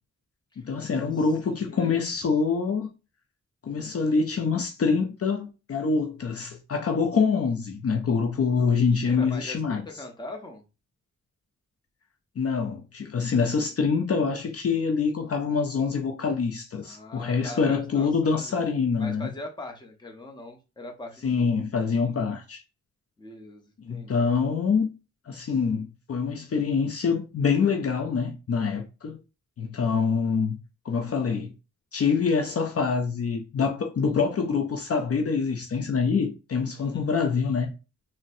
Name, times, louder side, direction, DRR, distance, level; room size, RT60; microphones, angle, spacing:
voice 1, 0.6-2.9 3.6-9.8 12.4-19.3 21.2-22.6 23.8-24.9 25.3-29.2 29.6-30.6 30.8-31.5 31.9-37.7, left 5 dB, 50° left, 0.5 m, -25 dB
voice 2, 1.2-2.0 8.7-10.6 16.8-18.7 19.0-21.5 23.2-24.3 36.8-37.1, left 1 dB, 15° left, 0.8 m, -42 dB
3.9 x 2.1 x 2.6 m
wide cardioid pair, 100°, 29 cm